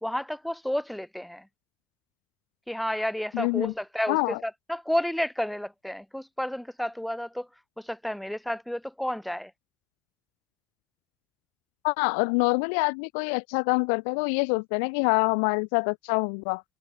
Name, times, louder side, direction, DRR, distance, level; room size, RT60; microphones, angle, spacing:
voice 1, 0.0-1.5 2.7-7.5 7.8-9.5, equal, 5° left, 2.0 m, -31 dB
voice 2, 3.3-3.7 4.1-4.4 11.8-16.6, left 38 dB, 85° left, 0.9 m, -25 dB
hypercardioid pair, 50°, 0 cm